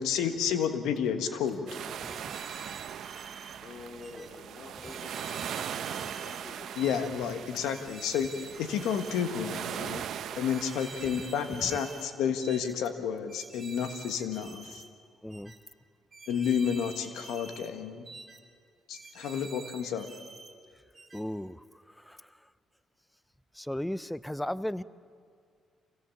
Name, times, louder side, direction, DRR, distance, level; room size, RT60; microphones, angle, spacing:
voice 1, 0.0-1.7 6.8-10.0 10.3-14.8 16.3-18.1 18.9-20.1, left 7 dB, 90° left, 8 dB, 1.5 m, -31 dB
sound 1, 1.7-12.1, right 9 dB, 70° right, 0.8 m, -40 dB
sound 2, 2.0-3.6 4.0-4.3 4.8-6.4 6.8-7.1 7.6-9.2 9.6-9.9 10.5-12.1 12.4-12.7 13.3-14.9 15.3-15.6 16.1-17.7 18.0-18.4 18.9-20.5 20.9-21.2, right 3 dB, 35° right, 2.7 m, -48 dB
voice 2, 3.6-6.9, left 3 dB, 50° left, 1 dB, 3.5 m, -47 dB
voice 3, 15.2-15.5 21.1-21.6 22.1-22.2 23.6-24.8, left 1 dB, 5° left, 17 dB, 0.5 m, -35 dB
25.5 x 17.0 x 7.2 m, 2.2 s
cardioid pair, 90°, 0 cm